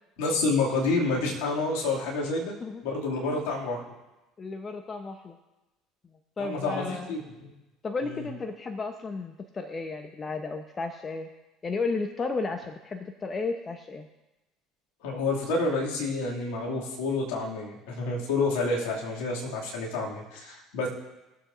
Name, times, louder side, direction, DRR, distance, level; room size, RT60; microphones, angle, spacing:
voice 1, 0.2-2.5 2.8-3.8 6.4-7.5 8.0-8.3 15.0-20.9, left 3 dB, 70° left, -3 dB, 2.4 m, -29 dB
voice 2, 4.4-5.4 6.4-7.1 7.8-11.3 11.6-14.1, left 3 dB, 30° left, 6 dB, 0.8 m, -33 dB
20.0 x 7.2 x 2.6 m, 1.0 s
hypercardioid pair, 65°, 0 cm